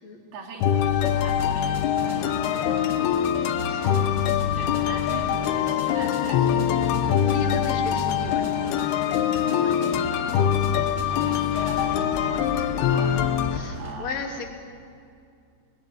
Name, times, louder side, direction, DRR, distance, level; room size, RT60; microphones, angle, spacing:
voice 1, 0.3-3.0 3.8-4.3 4.5-6.8 8.2-8.5 8.7-9.0 9.5-13.2 13.7-14.4, right 4 dB, 80° right, 2 dB, 4.7 m, -41 dB
sound 1, 0.6-13.6, left 9 dB, 90° left, 2.9 m, -24 dB
sound 2, 1.0-14.0, equal, 10° right, 3.6 m, -37 dB
voice 2, 7.2-9.0 9.6-9.8 13.5-14.5, left 3 dB, 45° left, 2 dB, 3.6 m, -35 dB
30.0 x 19.0 x 9.1 m, 2.4 s
omnidirectional pair, 4.4 m